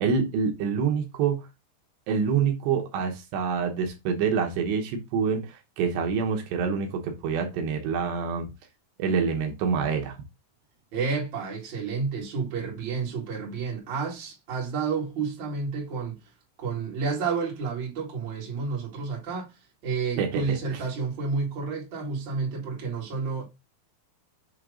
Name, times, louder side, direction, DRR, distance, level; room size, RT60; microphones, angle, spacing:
voice 1, 0.0-1.5 2.1-8.5 9.0-10.2 20.2-20.8, right 6 dB, 80° right, 3.0 m, -26 dB
voice 2, 10.9-16.2 16.6-19.5 19.8-23.4, right 5 dB, 35° right, 2.1 m, -30 dB
7.3 x 2.9 x 4.9 m
omnidirectional pair, 5.0 m